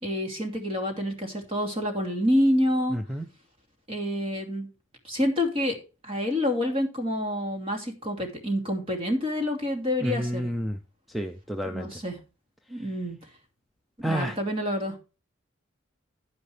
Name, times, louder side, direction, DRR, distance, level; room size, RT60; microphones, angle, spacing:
voice 1, 0.0-3.0 3.9-4.7 5.0-5.8 6.0-10.5 11.7-12.2 12.7-13.2 14.0-15.0, left 1 dB, 25° right, 2 dB, 2.7 m, -27 dB
voice 2, 10.0-10.8 11.1-11.9 14.0-14.3, equal, ahead, 6 dB, 0.5 m, -29 dB
10.5 x 9.7 x 3.3 m, 0.31 s
head